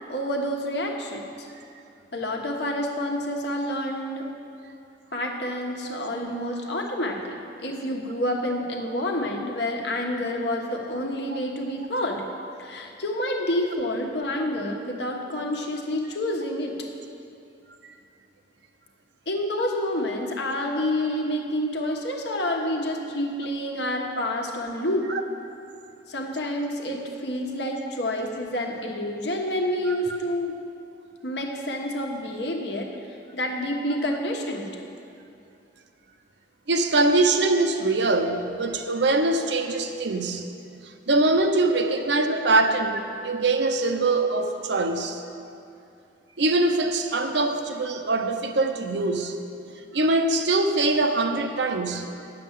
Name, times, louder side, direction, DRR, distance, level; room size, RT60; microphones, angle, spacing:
voice 1, 0.1-1.5 2.1-4.3 5.1-12.2 12.6-16.7 19.3-25.1 26.1-30.6 31.2-32.9 33.3-34.7, left 1 dB, 65° left, 1 dB, 1.3 m, -28 dB
voice 2, 36.7-40.5 41.1-45.2 46.4-49.4 49.9-52.1, right 2 dB, 70° right, 6 dB, 0.8 m, -23 dB
10.0 x 7.7 x 7.4 m, 2.6 s
head